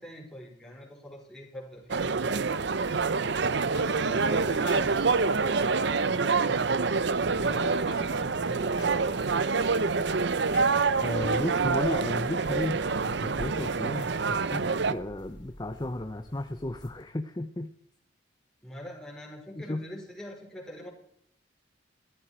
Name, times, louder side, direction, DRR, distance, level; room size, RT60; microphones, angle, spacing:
voice 1, 0.0-2.6 3.6-6.8 7.3-9.8 18.6-20.9, equal, 5° left, -4 dB, 5.1 m, -45 dB
sound 1, 1.8-17.1, left 2 dB, 70° left, 3.4 m, -51 dB
sound 2, 1.9-14.9, right 4 dB, 60° right, 0.7 m, -26 dB
voice 2, 11.0-17.7 19.6-19.9, left 1 dB, 20° left, 8 dB, 0.7 m, -34 dB
15.5 x 14.0 x 4.5 m, 0.68 s
head